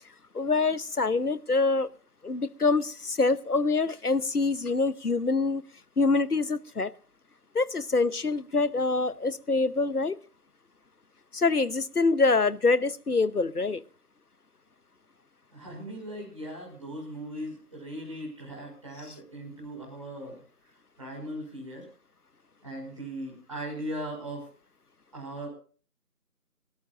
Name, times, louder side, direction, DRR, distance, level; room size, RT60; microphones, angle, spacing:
voice 1, 0.3-1.9 2.2-5.6 6.0-6.9 7.5-10.2 11.3-13.8 19.1-19.2, left 3 dB, 70° left, 18 dB, 1.0 m, -25 dB
voice 2, 15.5-20.4 21.0-21.8 22.6-24.5 25.1-25.5, right 1 dB, 20° right, -3 dB, 5.7 m, -38 dB
28.5 x 13.5 x 2.5 m, 0.40 s
figure-of-eight pair, 170°, 47 cm